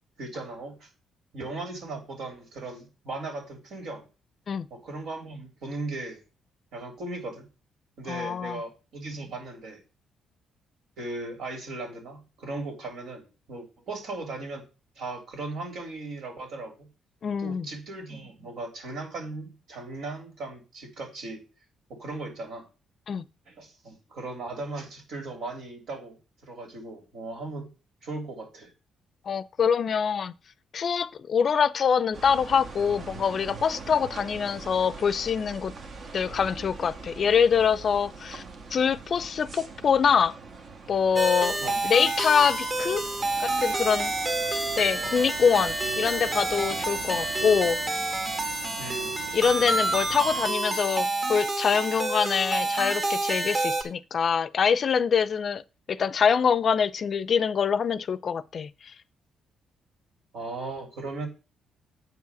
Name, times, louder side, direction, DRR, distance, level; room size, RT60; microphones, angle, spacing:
voice 1, 0.2-0.9 1.3-4.0 4.7-6.2 6.7-7.4 8.0-9.8 11.0-14.6 14.9-16.7 17.4-21.4 21.9-22.7 23.5-26.2 26.4-27.7 28.0-28.7 41.6-41.9 48.8-49.2 60.3-61.3, right 2 dB, 75° right, 3.3 m, -37 dB
voice 2, 8.1-8.6 17.2-17.7 23.1-23.2 29.3-30.3 30.7-35.7 36.1-38.4 38.7-40.4 40.9-41.6 41.8-43.0 43.4-44.1 44.8-47.8 49.3-55.6 55.9-58.7, left 6 dB, 50° left, 0.5 m, -24 dB
sound 1, 32.1-50.5, right 4 dB, 55° right, 1.5 m, -43 dB
sound 2, 41.2-53.8, right 2 dB, 40° right, 1.9 m, -28 dB
8.0 x 4.8 x 7.0 m
cardioid pair, 90°, 0 cm